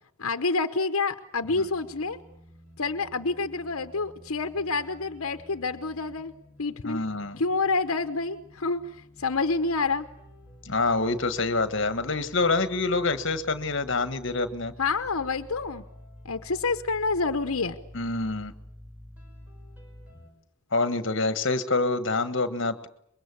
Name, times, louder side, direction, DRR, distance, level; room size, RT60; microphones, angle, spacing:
voice 1, 0.2-2.2 2.8-6.3 6.6-7.0 7.4-10.1 14.8-15.8 16.2-17.8, left 3 dB, 80° left, 9 dB, 1.0 m, -28 dB
sound 1, 1.4-20.3, equal, 5° right, 5.4 m, -50 dB
voice 2, 6.8-7.4 10.6-14.7 17.9-18.5 20.7-22.9, left 3 dB, 55° left, 12 dB, 1.5 m, -26 dB
25.0 x 22.5 x 8.4 m, 0.72 s
head